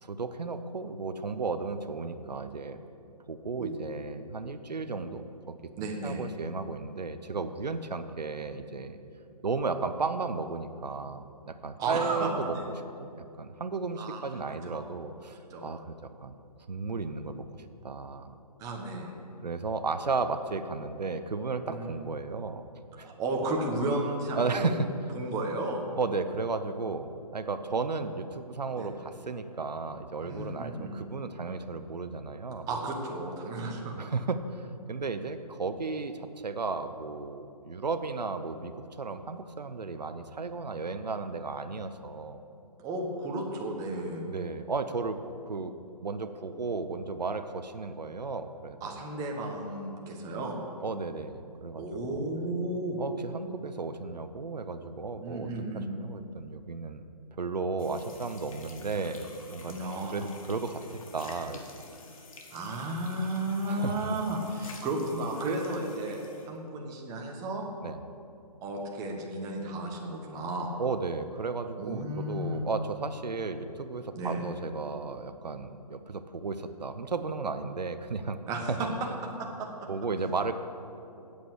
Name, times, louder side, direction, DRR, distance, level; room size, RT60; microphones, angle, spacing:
voice 1, 0.0-2.8 3.3-9.0 9.4-12.5 13.0-15.9 16.2-16.4 16.7-17.4 17.8-18.4 19.4-22.6 23.0-23.1 24.4-24.9 26.0-32.7 34.0-38.7 39.0-42.4 44.3-45.2 45.5-45.7 46.0-48.9 50.8-51.8 52.1-52.3 53.0-57.0 57.4-59.8 60.1-61.8 63.7-64.2 67.8-68.0 70.8-78.4 78.7-78.8 79.9-80.5, right 4 dB, 85° right, 10 dB, 0.7 m, -34 dB
voice 2, 5.8-6.2 11.8-12.7 14.0-14.2 14.6-14.8 15.5-15.6 18.6-19.1 21.6-21.9 23.0-24.7 25.1-25.8 28.7-28.9 30.2-30.9 32.7-33.9 42.8-44.3 48.8-50.6 51.7-53.0 55.2-55.9 59.7-60.1 62.5-66.2 66.5-67.6 68.6-70.7 71.8-72.6 74.1-74.5 78.5-78.9 79.4-79.7, right 2 dB, 15° right, 0 dB, 1.3 m, -33 dB
sound 1, 57.8-66.5, left 4 dB, 55° left, 1.7 m, -50 dB
8.4 x 8.2 x 8.0 m, 2.6 s
figure-of-eight pair, 140°, 21 cm